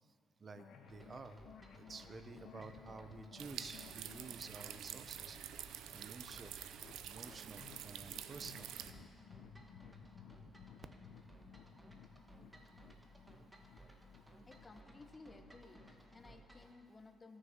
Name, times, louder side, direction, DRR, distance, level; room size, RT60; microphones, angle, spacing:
voice 1, 0.4-1.4 1.7-5.4 5.9-6.5 7.0-8.7, right 4 dB, 40° right, 10 dB, 0.6 m, -51 dB
sound 1, 0.5-16.5, left 7 dB, 75° left, 0.7 m, -59 dB
sound 2, 0.9-16.7, right 1 dB, 15° right, 1.2 m, -61 dB
sound 3, 3.4-8.9, right 10 dB, 85° right, 0.4 m, -48 dB
voice 2, 14.5-17.4, left 3 dB, 25° left, 7 dB, 0.8 m, -58 dB
17.0 x 6.4 x 3.6 m, 2.1 s
cardioid pair, 90°, 0 cm